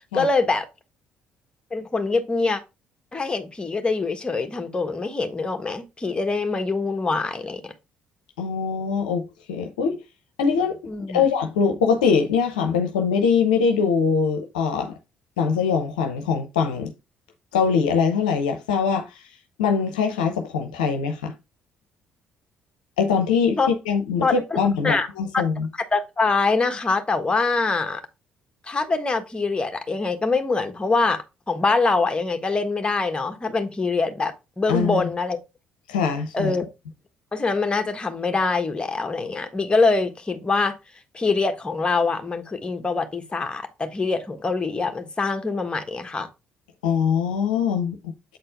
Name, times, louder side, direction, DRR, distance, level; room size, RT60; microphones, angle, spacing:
voice 1, 0.1-0.7 1.7-2.6 3.1-7.7 10.9-11.2 23.6-23.7 24.2-25.1 25.3-25.4 25.9-28.0 28.7-35.4 36.3-36.7 37.3-40.8 41.1-46.3, left 3 dB, 20° left, 1.4 m, -24 dB
voice 2, 8.4-10.0 10.4-10.8 11.1-14.9 15.4-16.9 17.5-19.1 19.6-21.3 23.0-23.6 23.9-25.7 34.7-35.0 35.9-36.5 46.8-48.0, left 6 dB, 75° left, 0.8 m, -22 dB
8.0 x 4.3 x 3.4 m
figure-of-eight pair, 45°, 4 cm